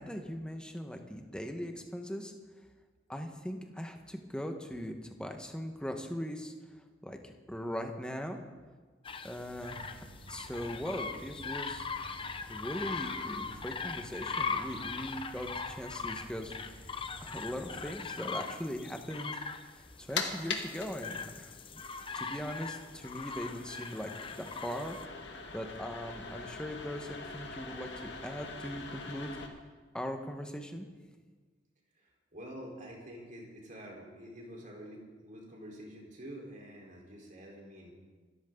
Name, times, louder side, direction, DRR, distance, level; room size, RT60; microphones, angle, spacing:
voice 1, 0.0-2.3 3.1-6.5 7.0-8.4 9.2-11.9 12.5-16.5 16.8-19.4 19.7-21.8 22.1-25.0 25.5-29.3 29.9-30.9, equal, 5° left, 4 dB, 1.5 m, -40 dB
sound 1, 9.0-25.1, left 5 dB, 30° left, 0.8 m, -40 dB
sound 2, 9.5-17.9, equal, 25° right, 7.1 m, -52 dB
sound 3, 19.8-29.5, left 4 dB, 70° left, 2.0 m, -43 dB
voice 2, 31.9-37.9, equal, 45° right, -1 dB, 4.3 m, -47 dB
26.5 x 14.0 x 4.0 m, 1.4 s
head